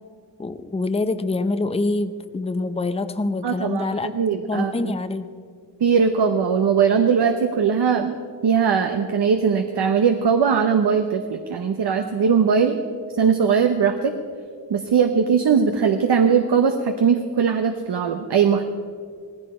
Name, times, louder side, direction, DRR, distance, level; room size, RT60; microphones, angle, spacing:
voice 1, 0.4-4.1 4.5-5.3, left 2 dB, 15° left, 10 dB, 0.6 m, -25 dB
voice 2, 3.4-4.9 5.8-8.1 8.4-12.8 13.2-14.1 14.7-18.6, right 6 dB, 65° right, 6 dB, 0.9 m, -20 dB
17.5 x 15.5 x 4.4 m, 2.1 s
cardioid pair, 75°, 43 cm